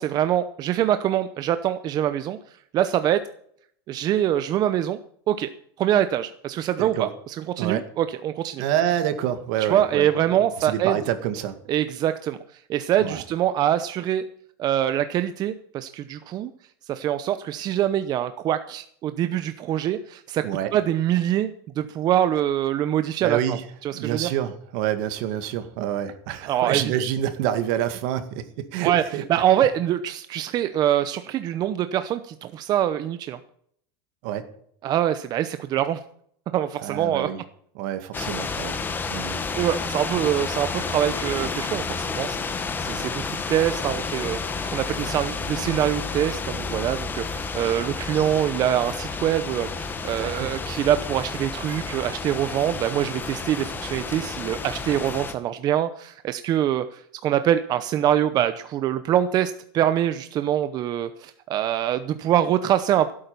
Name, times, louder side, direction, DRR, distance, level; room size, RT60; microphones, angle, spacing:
voice 1, 0.0-2.4 2.7-3.2 3.9-5.0 5.3-5.5 5.8-8.6 9.6-10.9 11.7-14.2 14.6-16.5 16.9-20.4 20.7-21.5 21.8-24.3 26.5-26.8 28.8-33.4 34.8-36.0 36.5-37.3 39.2-42.4 42.8-44.4 44.7-63.1, right 11 dB, 35° right, 11 dB, 0.7 m, -24 dB
voice 2, 6.8-7.1 7.6-7.8 8.6-11.6 13.0-13.2 20.4-20.7 23.2-23.6 23.9-29.2 34.2-34.5 36.8-37.4 37.8-38.8 39.1-39.4 50.2-50.6, right 11 dB, 60° right, 9 dB, 2.0 m, -27 dB
sound 1, 38.1-55.3, left 4 dB, 15° left, 1.4 m, -31 dB
16.0 x 8.8 x 6.9 m, 0.65 s
supercardioid pair, 150°, 12 cm